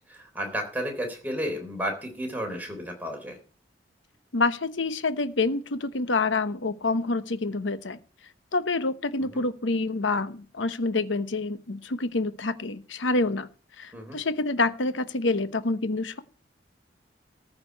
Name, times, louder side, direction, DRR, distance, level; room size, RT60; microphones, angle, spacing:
voice 1, 0.1-3.4 9.2-9.4 13.9-14.2, equal, 10° right, 2 dB, 3.6 m, -32 dB
voice 2, 4.3-8.0 8.5-13.5 13.8-16.2, left 3 dB, 90° left, 12 dB, 1.0 m, -27 dB
14.5 x 5.2 x 8.3 m, 0.39 s
head